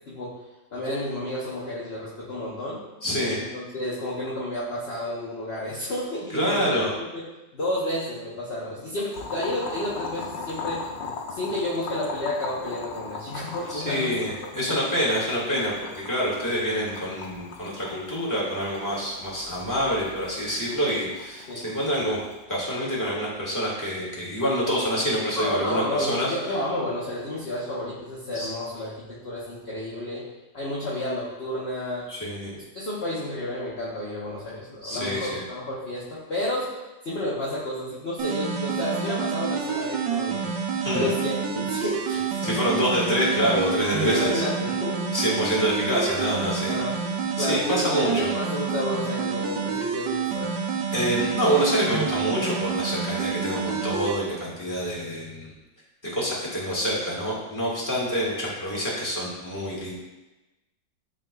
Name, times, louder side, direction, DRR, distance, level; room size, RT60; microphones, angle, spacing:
voice 1, 0.1-0.4 0.7-2.8 3.4-6.8 7.1-7.2 7.5-10.8 11.3-14.3 14.7-14.9 21.5-21.6 25.3-30.3 30.5-32.1 32.5-36.7 37.0-40.5 40.9-42.5 44.0-45.1 46.7-47.1 47.4-50.5, left 1 dB, 40° left, -7 dB, 1.0 m, -31 dB
voice 2, 3.0-3.4 6.3-6.9 13.7-22.2 22.5-26.3 28.3-28.5 32.1-32.5 34.8-35.4 40.8-41.1 42.4-44.4 45.1-46.8 47.4-48.3 50.9-55.5 56.0-59.9, equal, 10° left, -6 dB, 1.6 m, -26 dB
Boiling, 9.1-22.4, left 4 dB, 75° left, 1.5 m, -39 dB
sound 1, 38.2-54.2, right 6 dB, 75° right, 1.3 m, -28 dB
10.5 x 3.8 x 2.3 m, 1.1 s
omnidirectional pair, 2.0 m